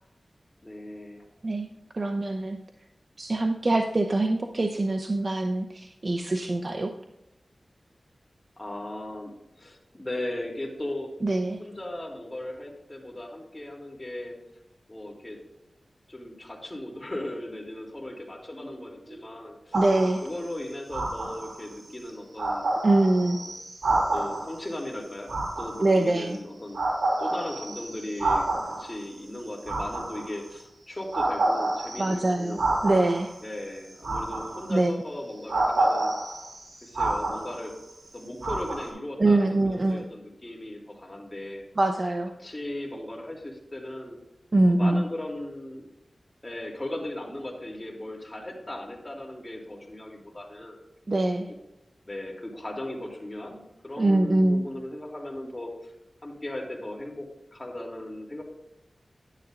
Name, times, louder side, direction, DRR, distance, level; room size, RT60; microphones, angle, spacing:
voice 1, 0.6-1.2 8.6-9.3 9.6-11.1 11.6-14.4 14.9-15.4 16.1-19.8 20.2-22.7 23.0-23.5 23.9-26.8 27.2-32.7 33.4-36.1 36.8-37.7 38.1-41.7 42.4-44.2 44.7-45.9 46.4-50.8 52.1-55.9 56.2-58.4, left 1 dB, 30° left, -1 dB, 2.9 m, -37 dB
voice 2, 1.9-2.6 3.2-6.9 11.2-11.6 19.1-19.2 19.7-20.2 22.8-23.4 25.8-26.4 32.0-33.3 34.7-34.9 39.2-40.0 41.8-42.3 44.5-45.0 51.1-51.5 54.0-54.6, right 2 dB, 55° right, 5 dB, 0.7 m, -24 dB
sound 1, 19.7-20.3 20.9-21.7 22.1-22.2 22.4-24.6 25.3-26.3 26.7-28.9 29.6-30.5 31.1-33.3 34.0-34.9 35.5-37.8 38.4-38.9, right 2 dB, 90° right, 3.5 m, -28 dB
10.5 x 9.9 x 2.5 m, 0.90 s
cardioid pair, 45°, 0 cm